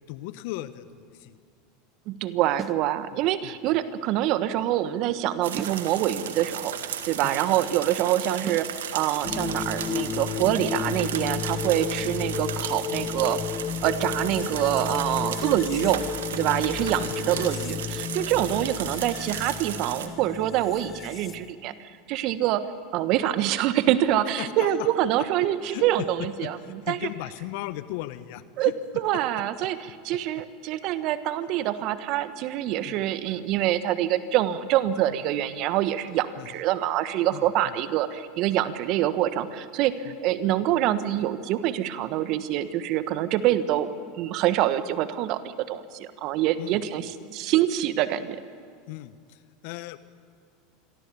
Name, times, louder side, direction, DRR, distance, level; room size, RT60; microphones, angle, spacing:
voice 1, 0.1-1.4 3.1-3.6 7.2-7.4 17.0-17.4 18.3-18.5 24.4-24.9 25.7-25.8 26.2-28.7 32.8-33.0 36.4-36.6 37.3-37.7 40.0-40.2 46.6-47.1 48.9-50.0, left 16 dB, 60° left, 13 dB, 1.2 m, -37 dB
voice 2, 2.1-6.7 7.0-13.4 13.8-22.7 22.9-27.0 28.6-28.7 29.0-43.9 44.2-48.4, right 12 dB, 55° right, 12 dB, 1.4 m, -25 dB
sound 1, 2.6-2.9 5.6-5.9 8.5-8.8, right 7 dB, 30° right, 0.8 m, -37 dB
sound 2, 5.4-20.1, right 9 dB, 75° right, 1.9 m, -35 dB
sound 3, 9.2-21.5, left 7 dB, 35° left, 1.1 m, -33 dB
27.0 x 23.0 x 7.1 m, 2.2 s
hypercardioid pair, 85°, 0 cm